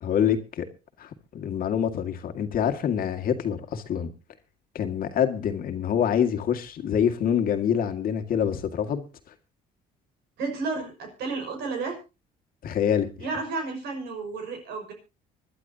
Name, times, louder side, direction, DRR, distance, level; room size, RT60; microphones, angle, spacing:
voice 1, 0.0-0.7 1.0-4.1 4.7-9.0 12.6-13.3, left 8 dB, 60° left, 2.1 m, -26 dB
voice 2, 10.4-12.0 13.2-14.9, right 4 dB, 80° right, 5.9 m, -32 dB
25.5 x 11.5 x 2.8 m
cardioid pair, 110°, 17 cm